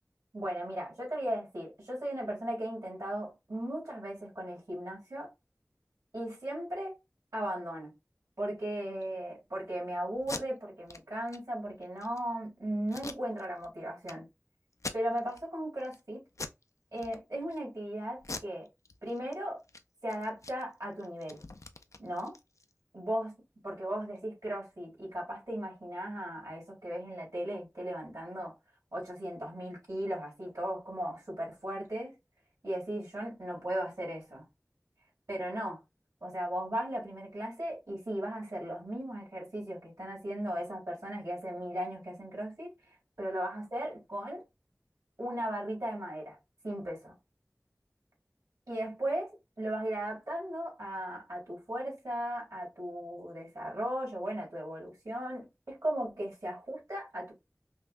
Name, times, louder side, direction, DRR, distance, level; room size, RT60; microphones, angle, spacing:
voice 1, 0.3-5.3 6.1-6.9 7.3-7.9 8.4-14.3 14.9-16.2 16.9-18.7 19.0-19.6 20.0-21.4 22.0-22.3 22.9-23.3 23.6-28.5 28.9-32.1 32.6-34.5 35.3-35.8 36.2-42.7 43.2-44.4 45.2-46.4 46.6-47.1 48.7-49.3 49.6-57.3, right 1 dB, 80° right, 2.6 m, -36 dB
Packing tape duct tape, 10.2-10.4 10.9-11.0 11.3-11.4 11.8-12.2 12.9-13.7 14.0-14.1 14.7-15.4 15.8-16.0 16.3-16.6 17.0-17.6 18.2-19.3 19.6-19.8 20.1-22.7, left 3 dB, 70° left, 0.4 m, -43 dB
5.4 x 2.2 x 2.5 m
wide cardioid pair, 40°, 6 cm